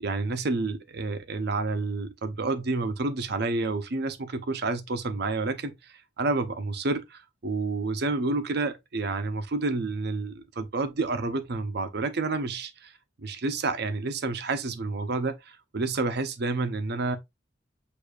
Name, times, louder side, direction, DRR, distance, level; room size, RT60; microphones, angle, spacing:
voice 1, 0.0-12.9 13.2-17.2, right 3 dB, 60° right, 0.6 m, -29 dB
6.6 x 2.7 x 2.3 m
head